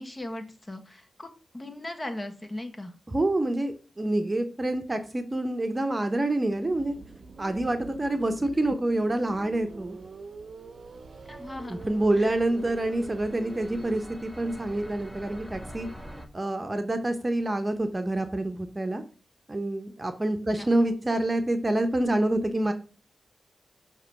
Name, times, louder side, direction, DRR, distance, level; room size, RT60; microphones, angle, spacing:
voice 1, 0.0-2.9 8.5-8.8 11.3-11.9 12.1-12.3 20.5-20.7, left 1 dB, 30° left, 6 dB, 1.4 m, -38 dB
voice 2, 3.1-6.9 7.4-10.0 11.7-15.9 16.3-19.0 19.5-22.7, right 1 dB, 30° right, 7 dB, 0.9 m, -27 dB
sound 1, 6.4-14.0, right 4 dB, 65° right, 0.7 m, -45 dB
sound 2, 10.8-16.3, equal, ahead, 1.1 m, -46 dB
6.5 x 3.0 x 5.7 m, 0.37 s
supercardioid pair, 40°, 0 cm